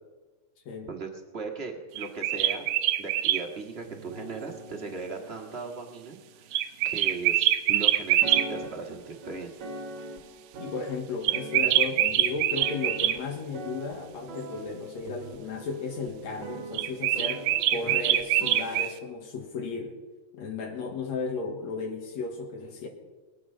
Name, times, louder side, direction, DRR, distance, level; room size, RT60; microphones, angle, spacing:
voice 1, 1.3-2.7 3.0-6.6 6.8-9.5, right 4 dB, 25° right, 3 dB, 1.5 m, -38 dB
sound 1, 2.0-3.4 6.5-8.5 11.2-13.2 16.7-18.9, right 13 dB, 85° right, 2.1 m, -24 dB
sound 2, 3.9-7.4 8.2-18.6, right 1 dB, 50° right, 1.9 m, -43 dB
voice 2, 10.6-20.0 20.3-22.9, left 4 dB, 70° left, 4 dB, 2.8 m, -34 dB
22.0 x 9.3 x 5.6 m, 1.3 s
omnidirectional pair, 3.3 m